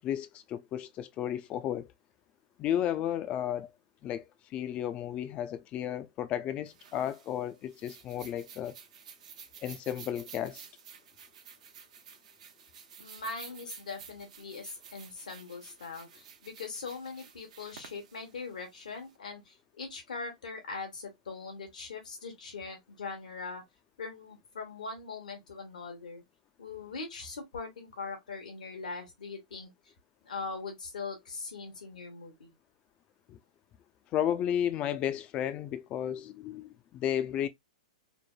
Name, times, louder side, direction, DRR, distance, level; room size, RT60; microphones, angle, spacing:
voice 1, 0.0-1.9 2.6-3.7 4.0-4.2 4.5-8.8 9.6-10.7 33.3-33.4 34.1-37.5, left 10 dB, 30° left, 0.4 m, -33 dB
sound 1, 6.7-19.1, right 7 dB, 65° right, 0.7 m, -52 dB
voice 2, 13.0-23.6 24.0-26.2 26.6-29.7 30.2-32.5, left 4 dB, 85° left, 1.1 m, -41 dB
3.2 x 2.0 x 2.3 m
hypercardioid pair, 125°, 4 cm